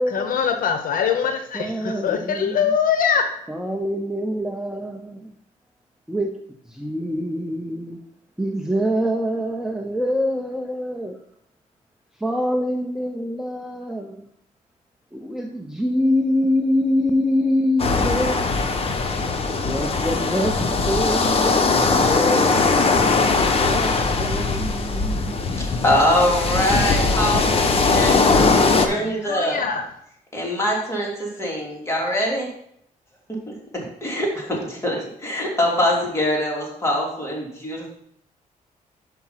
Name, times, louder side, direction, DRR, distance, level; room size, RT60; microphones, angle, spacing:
voice 1, 0.1-3.3 28.8-29.9, left 7 dB, 70° left, 0.8 m, -23 dB
voice 2, 1.5-2.7 3.5-5.3 6.1-6.3 6.7-8.0 8.4-11.2 12.2-14.3 15.1-18.6 19.5-22.8 23.6-25.4, equal, 5° right, 0.7 m, -25 dB
sound 1, 17.8-28.9, left 4 dB, 40° left, 1.0 m, -20 dB
voice 3, 25.6-29.6 30.3-32.5 33.3-37.9, left 1 dB, 20° left, 3.2 m, -23 dB
6.0 x 5.8 x 5.7 m
cardioid pair, 85°, 15 cm